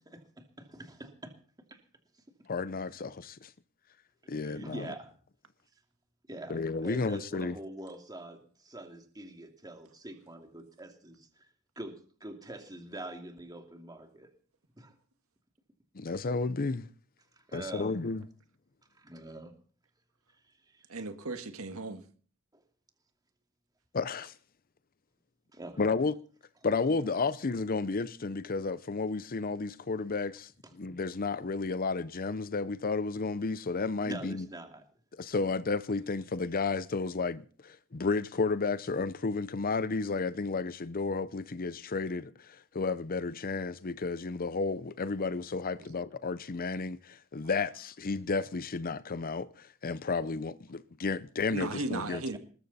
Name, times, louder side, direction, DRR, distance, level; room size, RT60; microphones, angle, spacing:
voice 1, 0.0-1.3 1.7-1.8 4.4-5.1 6.3-11.5 11.8-11.9 12.2-14.3 14.8-14.9 17.3-17.9 18.9-19.5 20.3-20.8 22.5-22.6 25.5-25.8 30.6-30.7 34.0-34.8 52.1-52.4, right 1 dB, 20° right, 2.6 m, -45 dB
voice 2, 2.5-3.5 4.3-4.9 6.5-7.6 15.9-16.9 17.5-18.2 23.9-24.3 25.8-26.1 26.6-30.5 30.8-34.5 35.2-52.2, left 4 dB, 45° left, 0.6 m, -32 dB
voice 3, 20.9-22.0 51.5-52.4, right 3 dB, 85° right, 1.8 m, -36 dB
20.0 x 14.0 x 4.2 m
head